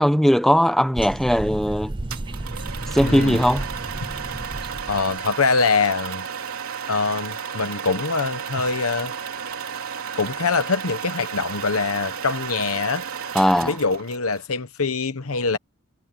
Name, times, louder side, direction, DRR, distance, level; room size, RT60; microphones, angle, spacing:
voice 1, 0.0-1.9 2.9-3.7 13.3-13.7, equal, ahead, 1.2 m, -19 dB
sound 1, 0.9-5.3, right 2 dB, 25° right, 0.6 m, -32 dB
sound 2, 2.1-14.4, right 7 dB, 70° right, 3.6 m, -33 dB
voice 2, 3.0-3.4 4.9-6.3 6.9-9.1 10.1-13.0 13.6-15.6, left 4 dB, 70° left, 1.1 m, -24 dB
head